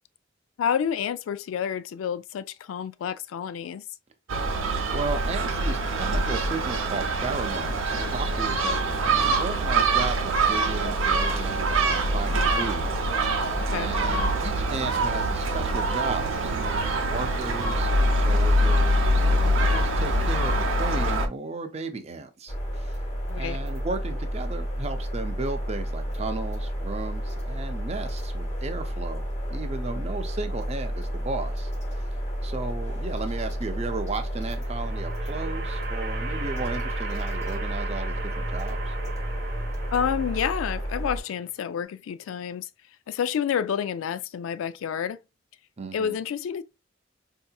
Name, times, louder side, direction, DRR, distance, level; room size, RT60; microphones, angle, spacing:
voice 1, 0.6-3.8 13.6-13.9 23.3-23.6 39.9-42.7 43.1-45.2 45.9-46.6, left 8 dB, 85° left, 0.3 m, -29 dB
Gull seagull, 4.3-21.3, right 1 dB, 80° right, 0.7 m, -24 dB
voice 2, 4.9-12.9 13.7-22.9 23.4-29.2 29.5-31.7 32.4-38.9 45.8-46.2, right 3 dB, 30° right, 0.5 m, -35 dB
sound 1, 22.5-41.2, equal, 35° left, 1.0 m, -31 dB
sound 2, 34.2-41.3, right 4 dB, 55° right, 0.9 m, -38 dB
4.6 x 2.8 x 2.2 m
head